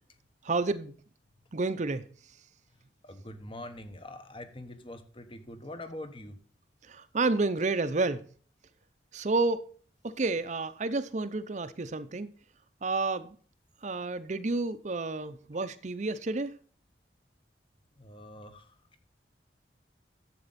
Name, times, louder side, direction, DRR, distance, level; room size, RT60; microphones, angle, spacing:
voice 1, 0.4-1.0 1.5-2.1 6.8-8.2 9.1-9.6 10.0-12.3 12.8-13.3 13.8-16.5, right 3 dB, 40° right, 0.6 m, -30 dB
voice 2, 3.0-6.4 18.0-18.7, left 1 dB, 30° left, 1.1 m, -44 dB
11.0 x 7.7 x 4.1 m
head